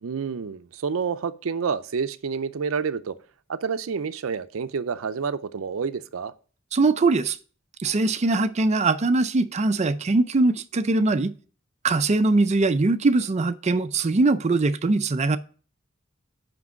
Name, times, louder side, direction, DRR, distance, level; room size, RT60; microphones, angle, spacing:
voice 1, 0.0-3.2 3.5-6.3, right 6 dB, 90° right, 0.5 m, -29 dB
voice 2, 6.7-7.4 7.8-11.3 11.8-15.4, right 3 dB, 35° right, 0.4 m, -21 dB
6.1 x 5.2 x 5.2 m
head